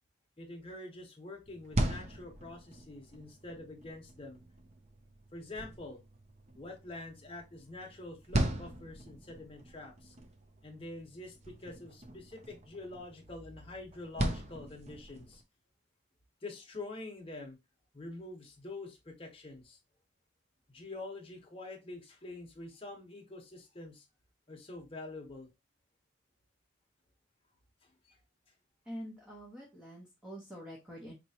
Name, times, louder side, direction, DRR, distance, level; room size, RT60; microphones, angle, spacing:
voice 1, 0.4-4.4 5.3-6.0 6.5-10.1 10.6-15.4 16.4-17.6 17.9-19.8 20.7-24.1 24.5-25.5 27.8-28.2, left 2 dB, 30° left, 1 dB, 1.1 m, -46 dB
sound 1, 1.5-15.4, right 1 dB, 35° right, 0.6 m, -39 dB
voice 2, 28.8-31.1, equal, 5° right, -3 dB, 1.0 m, -46 dB
4.3 x 3.0 x 2.8 m, 0.23 s
head